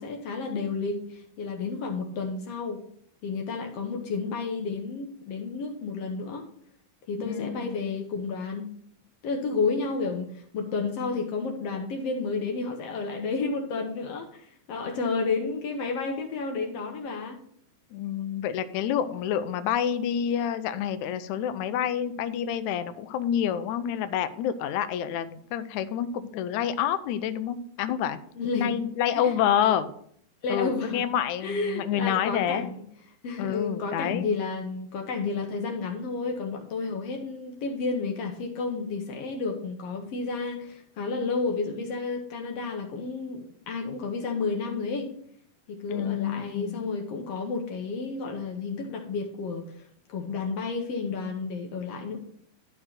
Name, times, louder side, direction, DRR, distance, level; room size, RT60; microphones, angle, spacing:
voice 1, 0.0-2.8 3.2-6.5 7.1-8.7 9.2-17.4 28.3-28.8 29.1-29.4 30.4-31.1 31.4-32.8 33.2-45.1 45.7-52.2, left 4 dB, 65° left, 3 dB, 1.6 m, -31 dB
voice 2, 7.3-7.8 17.9-28.2 28.5-29.9 30.5-32.7 33.4-34.3 45.9-46.8, left 9 dB, 80° left, 11 dB, 1.7 m, -28 dB
12.0 x 4.4 x 5.9 m, 0.63 s
omnidirectional pair, 4.0 m